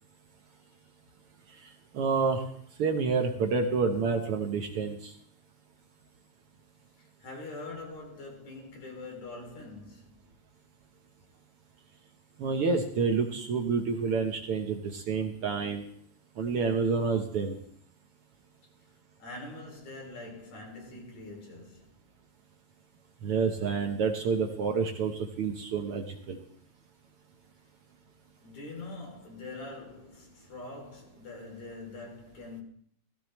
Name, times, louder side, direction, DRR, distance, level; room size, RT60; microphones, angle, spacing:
voice 1, 1.9-2.4 2.8-5.1 12.4-15.8 16.4-17.6 23.2-26.4, right 5 dB, 60° right, 1.7 m, -28 dB
voice 2, 7.2-10.2 19.2-21.9 28.4-32.6, left 2 dB, 75° left, 4.2 m, -44 dB
16.0 x 15.5 x 3.1 m
omnidirectional pair, 3.3 m